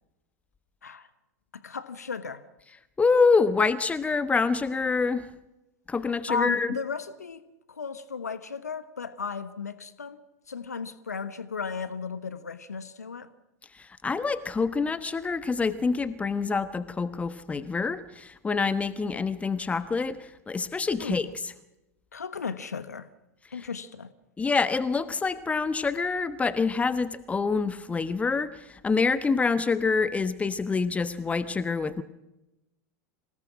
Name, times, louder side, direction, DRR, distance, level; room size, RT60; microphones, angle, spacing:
voice 1, 1.5-2.4 6.3-7.4 7.7-10.2 10.5-13.3 21.0-21.2 22.1-23.1 23.5-24.1, left 5 dB, 80° left, 13 dB, 1.3 m, -35 dB
voice 2, 3.0-5.3 5.9-6.7 13.8-21.3 24.4-32.0, left 4 dB, 15° left, 13 dB, 1.1 m, -26 dB
26.5 x 18.0 x 6.2 m, 0.94 s
figure-of-eight pair, 85°, 9 cm